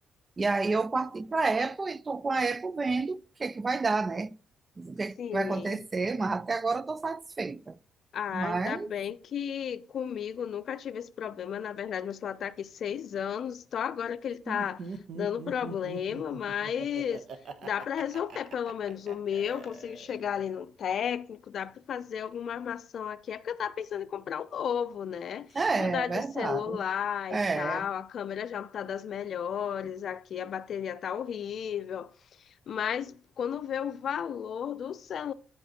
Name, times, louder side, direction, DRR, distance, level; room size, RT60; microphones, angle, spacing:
voice 1, 0.4-4.3 4.8-7.8 8.3-8.9 25.5-26.8 27.3-27.8, right 3 dB, 30° right, 0.4 m, -30 dB
voice 2, 5.2-5.8 8.1-14.9 15.1-17.2 17.6-25.5 25.8-32.1 32.7-35.3, left 8 dB, 60° left, 0.6 m, -33 dB
Laughter, 14.5-20.4, right 4 dB, 60° right, 1.2 m, -42 dB
9.7 x 5.4 x 4.3 m
cardioid pair, 90°, 0 cm